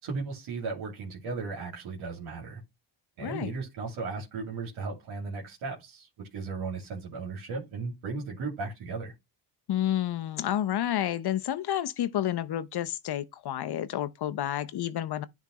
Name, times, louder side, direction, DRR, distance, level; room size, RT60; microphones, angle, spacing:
voice 1, 0.0-2.6 3.2-9.1, right 4 dB, 75° right, 2.6 m, -36 dB
voice 2, 3.2-3.5 9.7-15.3, left 11 dB, 50° left, 0.8 m, -30 dB
10.5 x 3.6 x 3.0 m
supercardioid pair, 80°, 50 cm